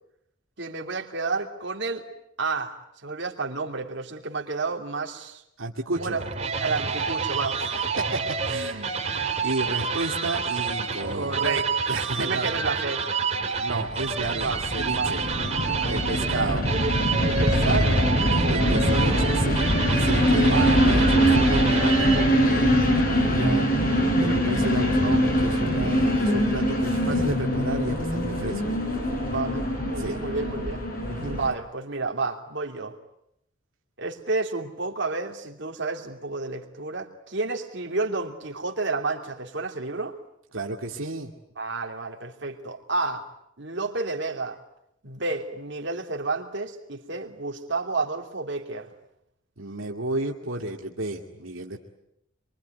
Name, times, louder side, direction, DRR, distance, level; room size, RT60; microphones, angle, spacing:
voice 1, 0.6-2.0 2.4-2.8 3.0-5.4 5.9-6.2 6.6-7.6 10.9-11.6 12.1-13.1 14.3-16.6 17.2-18.9 20.4-20.8 29.2-30.9 31.3-33.0 34.0-40.2 41.6-43.2 43.6-44.6 45.0-48.9, right 3 dB, 60° right, 2 dB, 3.0 m, -31 dB
voice 2, 5.6-6.2 8.0-9.0 9.4-11.6 11.9-12.5 13.6-15.2 15.9-16.7 17.6-17.8 18.4-19.6 19.9-23.7 24.2-28.7 30.0-30.2 31.1-31.4 40.5-41.3 49.6-51.8, right 2 dB, 80° right, 1 dB, 2.4 m, -32 dB
sound 1, 6.0-22.5, right 5 dB, 35° right, 3.9 m, -28 dB
sound 2, 13.9-31.5, equal, 45° left, 5.7 m, -23 dB
25.5 x 24.0 x 9.4 m, 0.77 s
head